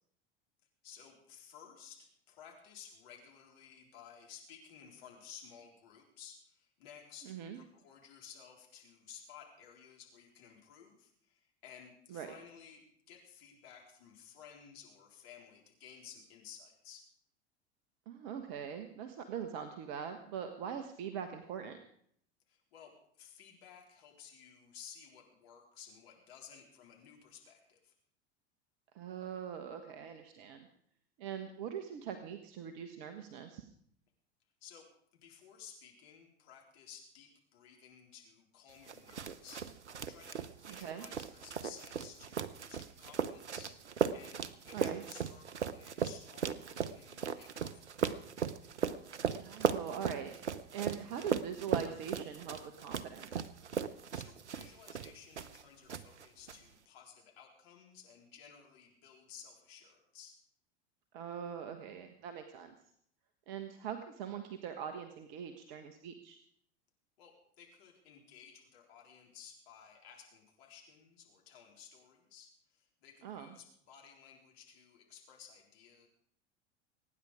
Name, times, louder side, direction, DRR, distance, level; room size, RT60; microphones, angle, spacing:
voice 1, 0.8-17.1 22.5-27.9 34.6-34.9 35.1-48.1 53.9-60.4 67.2-76.1, left 8 dB, 60° left, 1 dB, 4.2 m, -56 dB
voice 2, 7.2-7.6 12.1-12.3 18.1-21.8 28.9-30.7 31.2-33.7 40.7-41.1 44.7-45.0 49.3-50.3 50.7-53.3 61.1-62.7 63.5-66.4 73.2-73.5, right 8 dB, 50° right, 8 dB, 1.5 m, -42 dB
sound 1, 38.9-55.6 55.9-56.6, right 7 dB, 80° right, 0.9 m, -37 dB
23.5 x 10.0 x 5.0 m, 0.66 s
figure-of-eight pair, 85°, 34 cm